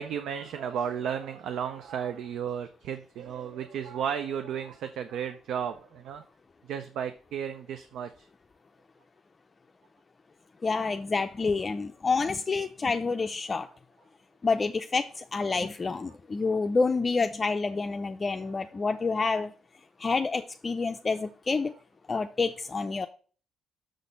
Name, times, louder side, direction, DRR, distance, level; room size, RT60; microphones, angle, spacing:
voice 1, 0.0-6.2 6.7-8.3, right 8 dB, 80° right, 0.5 m, -34 dB
voice 2, 10.6-13.7 14.4-19.5 20.0-21.7 22.1-23.1, left 4 dB, 30° left, 0.4 m, -28 dB
6.4 x 4.1 x 5.2 m
cardioid pair, 90°, 0 cm